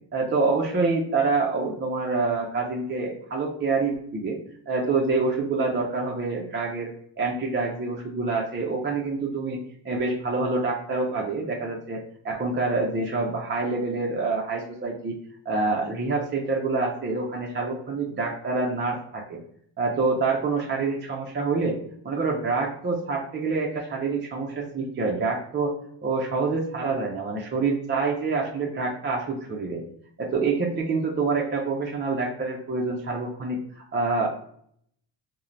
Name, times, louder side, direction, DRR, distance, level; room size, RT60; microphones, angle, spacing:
voice 1, 0.1-4.4 4.7-6.9 7.2-9.6 9.8-15.2 15.5-19.4 19.8-21.8 22.0-29.8 30.2-34.3, right 3 dB, 25° right, -1 dB, 0.3 m, -26 dB
3.0 x 2.1 x 2.4 m, 0.66 s
cardioid pair, 100°, 48 cm